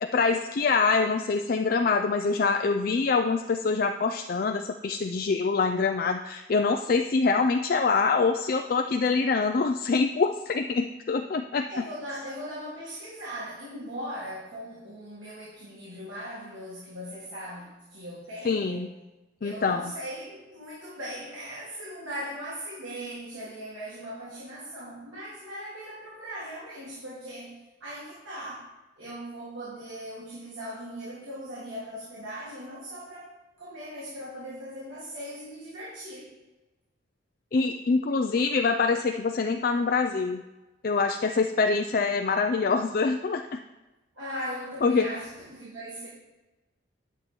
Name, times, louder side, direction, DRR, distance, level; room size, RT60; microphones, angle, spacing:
voice 1, 0.0-11.8 18.4-18.9 19.4-19.9 37.5-40.4 40.8-43.6 44.8-45.1, left 4 dB, 45° left, 5 dB, 0.4 m, -25 dB
voice 2, 11.7-19.0 19.4-36.3 44.1-46.1, equal, 85° right, -8 dB, 2.7 m, -39 dB
9.1 x 8.2 x 4.3 m, 1.1 s
head